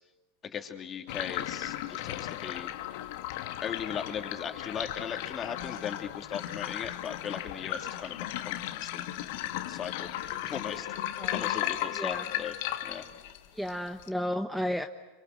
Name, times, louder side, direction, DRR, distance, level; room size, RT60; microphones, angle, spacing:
voice 1, 0.4-2.7 3.6-9.0 9.7-10.1 10.4-10.9 11.3-12.5 12.8-13.1, left 7 dB, 30° left, 5 dB, 3.0 m, -38 dB
sound 1, 1.1-14.1, left 13 dB, 65° left, 1.4 m, -36 dB
voice 2, 11.2-11.5 12.0-12.2 13.5-14.9, equal, ahead, 8 dB, 1.0 m, -33 dB
27.0 x 25.0 x 7.9 m, 1.2 s
hypercardioid pair, 90°, 0 cm